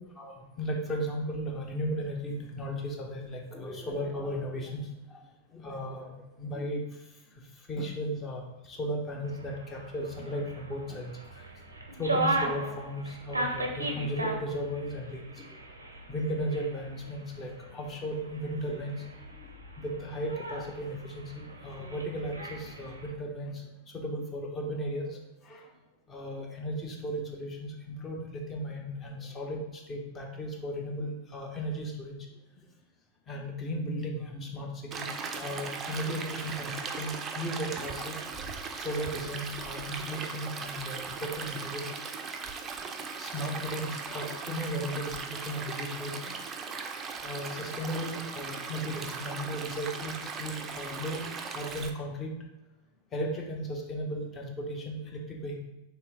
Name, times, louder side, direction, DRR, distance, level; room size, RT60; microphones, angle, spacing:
voice 1, 0.2-5.2 5.5-6.8 7.7-11.1 11.9-15.4 16.1-19.1 19.8-23.6 23.9-25.6 26.1-32.1 33.3-38.4 38.8-41.8 42.9-46.4 47.2-51.2 51.5-52.3 53.1-55.6, equal, 25° left, 0 dB, 0.8 m, -36 dB
sound 1, 9.2-23.1, right 2 dB, 80° right, 0.5 m, -37 dB
Stream, 34.9-51.9, right 5 dB, 25° right, 0.4 m, -38 dB
3.3 x 3.0 x 3.5 m, 0.95 s
figure-of-eight pair, 90°, 0 cm